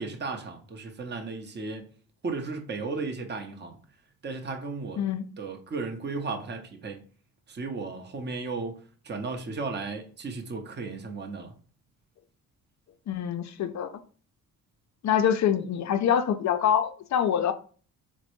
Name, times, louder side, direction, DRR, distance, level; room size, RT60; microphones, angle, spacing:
voice 1, 0.0-1.9 2.2-3.8 4.2-5.0 5.4-7.0 7.5-11.5, right 4 dB, 25° right, 0.8 m, -35 dB
voice 2, 13.1-13.9 15.0-17.5, left 9 dB, 40° left, 0.5 m, -25 dB
3.9 x 2.2 x 3.0 m
hypercardioid pair, 50°, 43 cm